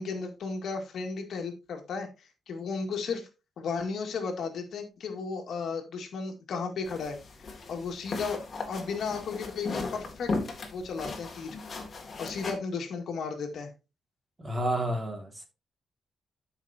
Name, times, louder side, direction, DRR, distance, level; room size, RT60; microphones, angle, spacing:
voice 1, 0.0-3.3 3.6-8.4 8.7-10.3 10.7-11.6 12.2-13.7, left 5 dB, 65° left, 4 dB, 2.0 m, -34 dB
sound 1, 6.8-12.5, left 3 dB, 40° left, 2.2 m, -37 dB
voice 2, 14.4-15.5, right 1 dB, 20° right, 4 dB, 2.1 m, -30 dB
12.5 x 5.9 x 2.8 m, 0.28 s
cardioid pair, 135°, 0 cm